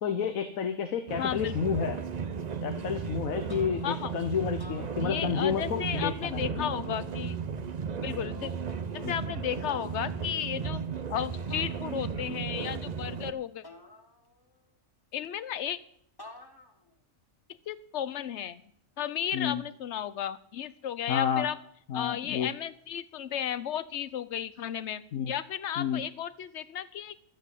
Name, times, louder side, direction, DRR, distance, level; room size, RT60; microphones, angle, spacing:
voice 1, 0.0-2.0 2.6-6.7 9.0-9.2 19.3-19.6 21.1-21.5 21.9-22.5 25.1-25.3 25.8-26.0, left 7 dB, 90° left, 8 dB, 1.4 m, -30 dB
sound 1, 1.1-13.3, right 6 dB, 40° right, 0.6 m, -35 dB
voice 2, 1.2-1.9 3.8-4.1 5.0-7.4 8.0-8.5 8.9-10.8 11.1-13.6 15.1-15.8 17.7-18.6 19.0-21.6 21.9-27.2, left 10 dB, 60° left, 15 dB, 1.0 m, -34 dB
sound 2, 3.5-4.1 4.5-5.6 6.6-7.5 8.7-9.2 9.7-10.2 11.5-12.3 13.6-14.6 16.2-16.9, left 1 dB, 20° left, 1.1 m, -51 dB
12.0 x 8.3 x 8.2 m, 0.67 s
omnidirectional pair, 1.4 m